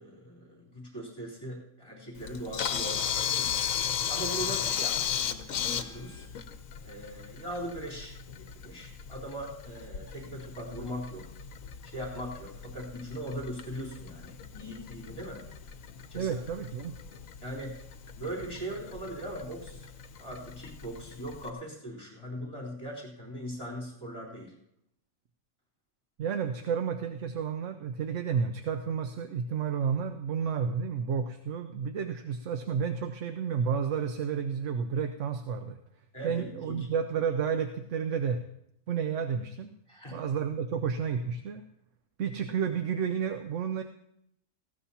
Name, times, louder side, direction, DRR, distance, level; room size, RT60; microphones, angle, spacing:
voice 1, 0.0-3.5 4.1-6.3 6.8-8.1 8.5-11.3 11.8-15.4 16.1-16.3 17.4-17.8 18.2-19.9 20.2-24.5 36.1-36.9 39.9-40.2, equal, 20° left, -6 dB, 3.7 m, -40 dB
Camera, 2.2-21.5, left 8 dB, 70° left, 1.2 m, -36 dB
voice 2, 16.1-17.0 26.2-35.8 36.2-38.4 38.9-39.7 40.1-41.6 42.2-43.8, right 6 dB, 65° right, 7 dB, 1.0 m, -31 dB
18.5 x 16.0 x 2.8 m, 0.76 s
omnidirectional pair, 1.5 m